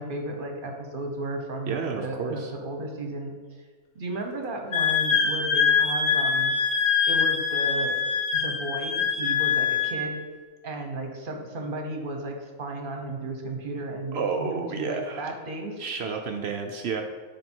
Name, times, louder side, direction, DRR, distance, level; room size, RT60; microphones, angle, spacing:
voice 1, 0.0-3.3 3.9-6.5 7.1-8.0 8.3-10.2 10.6-15.8, right 1 dB, 45° right, 3 dB, 0.8 m, -34 dB
voice 2, 1.7-2.5 14.1-15.3 15.8-17.0, right 5 dB, 75° right, 4 dB, 0.6 m, -31 dB
Wind instrument woodwind instrument, 4.7-10.0, left 6 dB, 65° left, 1.3 m, -24 dB
9.8 x 3.4 x 4.4 m, 1.5 s
omnidirectional pair, 1.6 m